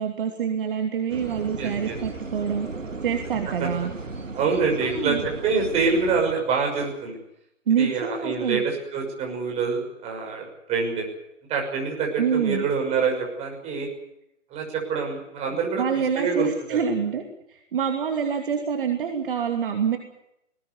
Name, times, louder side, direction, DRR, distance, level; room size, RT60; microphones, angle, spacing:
voice 1, 0.0-2.7 3.0-3.9 4.8-5.2 7.7-8.6 12.2-12.7 15.8-17.2 17.5-20.0, right 7 dB, 45° right, 4 dB, 2.9 m, -26 dB
sound 1, 1.1-6.4, right 3 dB, 80° right, 2.4 m, -36 dB
voice 2, 1.6-1.9 3.6-3.7 4.3-7.2 7.8-11.1 11.5-13.9 14.5-15.8 16.1-16.8, right 5 dB, 15° right, 1 dB, 6.2 m, -26 dB
20.5 x 18.5 x 9.7 m, 0.82 s
figure-of-eight pair, 135°, 37 cm